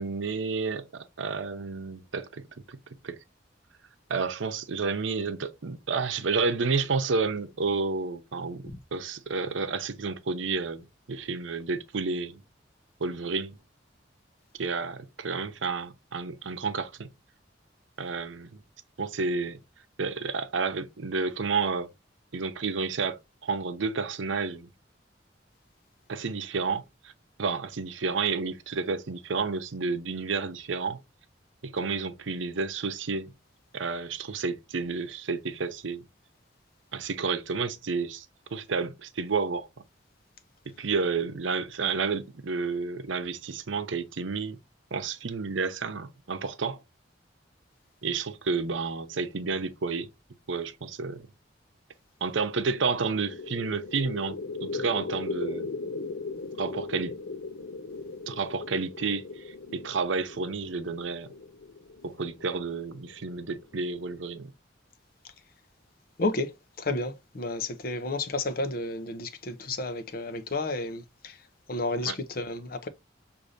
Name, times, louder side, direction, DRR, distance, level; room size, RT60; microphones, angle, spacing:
voice 1, 0.0-2.8 3.0-3.2 4.1-12.4 13.0-13.6 14.6-17.1 18.0-18.6 19.0-19.6 20.0-21.9 22.3-24.7 26.1-27.1 27.4-31.0 31.6-33.3 33.7-36.1 36.9-38.3 38.5-39.7 40.7-44.6 44.9-46.8 48.0-50.1 50.5-51.3 52.2-55.7 56.6-57.1 58.3-61.3 62.0-64.5 72.0-72.2, right 4 dB, 90° right, 0.7 m, -30 dB
sound 1, 52.7-64.2, left 3 dB, 85° left, 0.6 m, -38 dB
voice 2, 66.2-71.4 71.7-72.9, left 2 dB, 50° left, 0.6 m, -31 dB
6.3 x 2.6 x 2.6 m
head